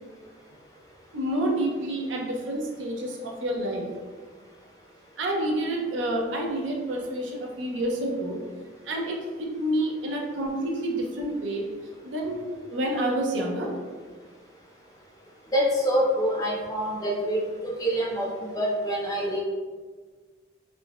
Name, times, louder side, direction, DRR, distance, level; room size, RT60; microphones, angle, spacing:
voice 1, 1.1-3.8 5.2-8.4 8.8-11.6 12.0-13.7, right 1 dB, 75° right, 0 dB, 0.5 m, -28 dB
voice 2, 15.5-19.4, equal, 20° left, -3 dB, 0.5 m, -26 dB
3.7 x 2.1 x 2.2 m, 1.5 s
head